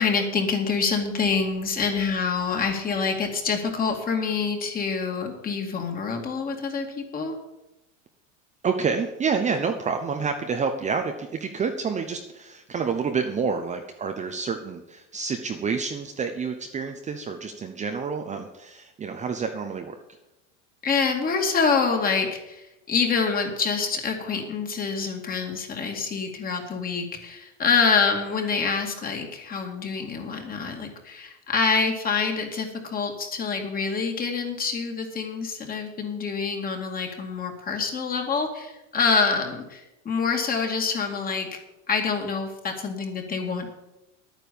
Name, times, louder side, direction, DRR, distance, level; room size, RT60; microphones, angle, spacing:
voice 1, 0.0-7.4 20.8-41.5 41.9-43.7, left 5 dB, 25° left, 3 dB, 2.4 m, -26 dB
voice 2, 8.6-20.0, right 5 dB, 20° right, 5 dB, 0.9 m, -28 dB
11.0 x 9.4 x 7.0 m, 0.94 s
supercardioid pair, 135°, 35 cm